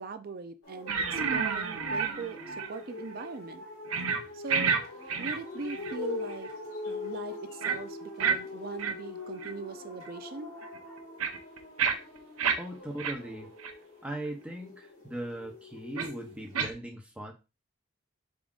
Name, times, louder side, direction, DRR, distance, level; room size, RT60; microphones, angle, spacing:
voice 1, 0.0-3.6 4.3-4.8 5.1-6.5 6.9-10.5, right 4 dB, 45° right, 11 dB, 0.4 m, -40 dB
sound 1, 0.6-16.6, left 3 dB, 75° left, 1.9 m, -43 dB
sound 2, 0.9-2.8 3.1-3.2 3.9-4.2 4.5-4.8 5.1-6.0 6.3-6.5 7.6-7.8 8.2-8.4 8.8-8.9 9.4-9.5 10.0-10.1 10.6-12.6 13.0-13.1 13.6-13.7 14.2-14.3 16.0-16.1 16.5-16.7, right 6 dB, 90° right, 0.7 m, -29 dB
voice 2, 12.6-13.5 14.0-17.3, right 1 dB, 5° right, 1 dB, 0.6 m, -39 dB
5.0 x 3.7 x 2.4 m, 0.28 s
head